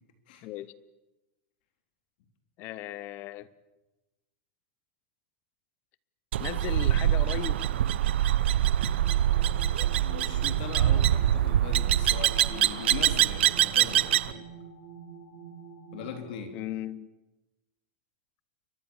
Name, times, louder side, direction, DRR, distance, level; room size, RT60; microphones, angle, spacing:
voice 1, 0.4-0.7 2.6-3.5 6.4-7.6 16.5-17.1, left 14 dB, 30° left, 18 dB, 0.9 m, -36 dB
sound 1, 6.3-14.3, right 12 dB, 85° right, 0.9 m, -24 dB
sound 2, 8.7-16.1, right 7 dB, 50° right, 5.0 m, -47 dB
voice 2, 9.6-14.5 15.9-16.5, left 7 dB, 55° left, 5 dB, 3.7 m, -40 dB
29.0 x 24.0 x 7.3 m, 1.1 s
supercardioid pair, 170°, 6 cm